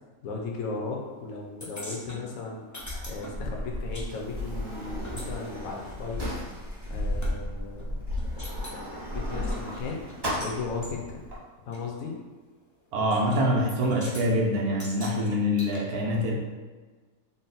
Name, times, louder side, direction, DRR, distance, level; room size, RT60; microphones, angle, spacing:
voice 1, 0.2-2.6 3.0-6.3 6.9-8.1 8.7-8.9 9.1-10.0 10.4-11.3 11.7-12.2, left 4 dB, 70° left, -1 dB, 1.1 m, -36 dB
sound 1, 1.6-4.1 4.3-7.3 7.8-7.9 8.2-8.8 9.3-10.5 10.8-11.0 11.7-11.8 13.1-13.4 13.7-14.3 14.8-15.8, equal, 25° left, 0.4 m, -43 dB
Sliding door, 2.8-11.4, left 1 dB, 25° right, 0.5 m, -34 dB
voice 2, 12.9-16.4, equal, 90° right, 0 dB, 1.2 m, -25 dB
3.9 x 2.1 x 4.0 m, 1.4 s
omnidirectional pair, 1.5 m